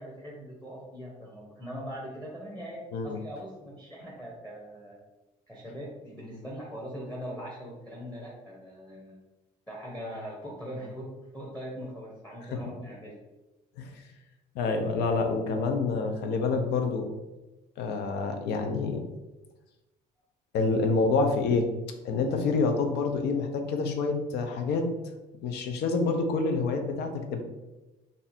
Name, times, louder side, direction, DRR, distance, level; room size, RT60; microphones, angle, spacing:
voice 1, 0.0-5.0 5.5-9.2 9.7-13.2, equal, 10° left, -4 dB, 0.8 m, -41 dB
voice 2, 14.5-17.1 17.8-19.0 20.5-21.7 22.0-24.9 25.4-27.4, left 4 dB, 80° left, 5 dB, 0.6 m, -27 dB
2.7 x 2.5 x 4.0 m, 1.1 s
cardioid pair, 110°, 17 cm